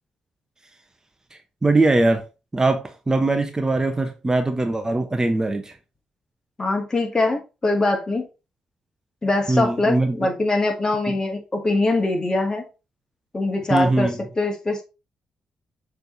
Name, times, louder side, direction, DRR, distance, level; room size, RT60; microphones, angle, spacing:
voice 1, 1.6-2.2 2.5-5.7 9.5-10.3 13.7-14.2, right 2 dB, 25° right, 1.0 m, -21 dB
voice 2, 6.6-8.3 9.2-12.6 13.3-14.1 14.4-14.8, left 2 dB, 30° left, 2.1 m, -22 dB
6.7 x 3.5 x 4.0 m
hypercardioid pair, 45°, 3 cm